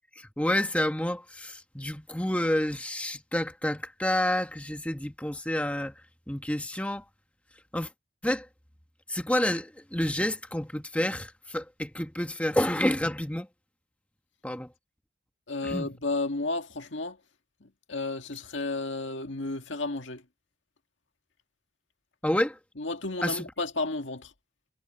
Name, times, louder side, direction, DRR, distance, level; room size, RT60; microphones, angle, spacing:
voice 1, 0.1-5.9 6.3-7.0 7.7-7.9 8.2-8.5 9.1-13.5 14.4-14.7 15.6-15.9 22.2-22.6 23.2-23.5, left 1 dB, 5° left, 1.4 m, -29 dB
voice 2, 15.5-17.2 17.6-20.2 22.8-24.3, left 2 dB, 80° left, 1.9 m, -32 dB
head